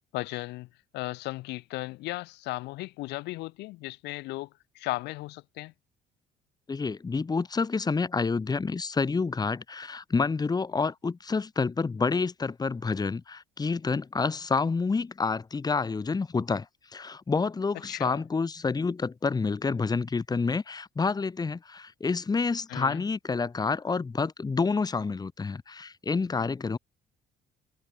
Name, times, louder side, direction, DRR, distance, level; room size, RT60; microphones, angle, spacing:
voice 1, 0.1-5.7 17.9-18.2 22.7-23.0, left 20 dB, 90° left, 3.5 m, -36 dB
voice 2, 6.7-16.7 16.9-26.8, left 4 dB, 25° left, 2.5 m, -28 dB
cardioid pair, 110°, 17 cm